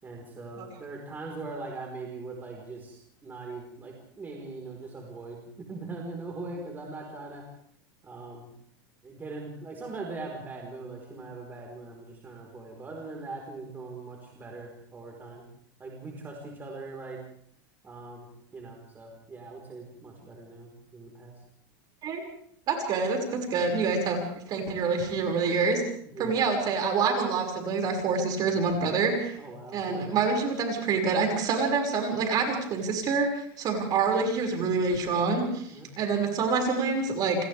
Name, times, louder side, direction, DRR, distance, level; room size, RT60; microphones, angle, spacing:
voice 1, 0.0-7.4 8.0-8.5 9.0-15.4 15.8-17.2 17.8-18.3 18.5-21.3 26.0-26.4 29.4-30.1 35.7-35.9, right 3 dB, 15° right, 0 dB, 4.6 m, -41 dB
voice 2, 22.7-24.2 24.5-25.8 26.2-29.4 29.7-35.7 36.0-37.4, right 4 dB, 35° right, 3 dB, 6.1 m, -26 dB
29.0 x 25.0 x 3.6 m, 0.66 s
supercardioid pair, 145°, 11 cm